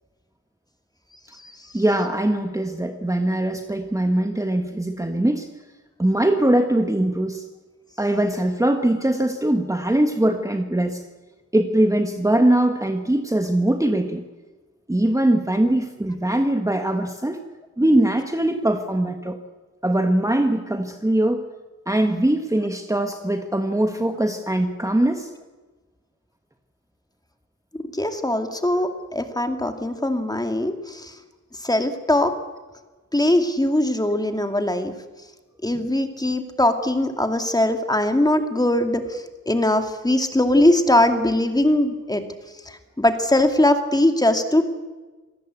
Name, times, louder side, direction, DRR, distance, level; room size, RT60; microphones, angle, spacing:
voice 1, 1.7-5.5 6.0-7.4 8.0-11.0 11.5-14.2 14.9-17.4 17.8-19.4 19.8-21.4 21.9-25.3, right 1 dB, 10° right, 6 dB, 1.5 m, -21 dB
voice 2, 27.9-31.2 31.6-32.3 33.1-34.9 35.6-42.2 42.7-44.6, left 1 dB, 15° left, 6 dB, 2.4 m, -21 dB
27.0 x 19.0 x 8.3 m, 1.3 s
wide cardioid pair, 115°, 29 cm